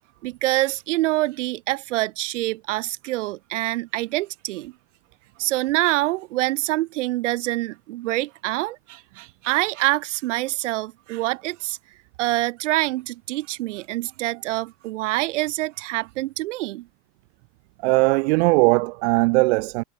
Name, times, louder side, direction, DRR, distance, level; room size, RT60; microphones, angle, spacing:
voice 1, 0.2-4.7 5.4-11.8 12.2-16.9, right 18 dB, 85° right, 4.5 m, -26 dB
voice 2, 17.8-19.8, right 26 dB, 70° right, 0.9 m, -19 dB
supercardioid pair, 145°, 35 cm